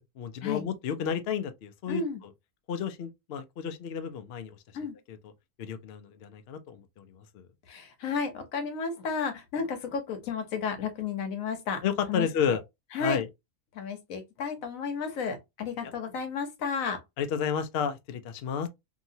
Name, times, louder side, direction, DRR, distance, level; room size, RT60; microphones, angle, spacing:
voice 1, 0.0-2.0 2.7-4.6 5.1-5.3 5.6-7.5 11.8-12.6 13.0-13.3 15.8-15.9 17.2-18.7, left 7 dB, 60° left, 0.7 m, -32 dB
voice 2, 1.9-2.2 4.7-4.9 7.7-11.8 12.1-12.6 12.9-13.2 13.7-17.0, left 5 dB, 85° left, 1.3 m, -32 dB
2.9 x 2.7 x 2.7 m
omnidirectional pair, 1.4 m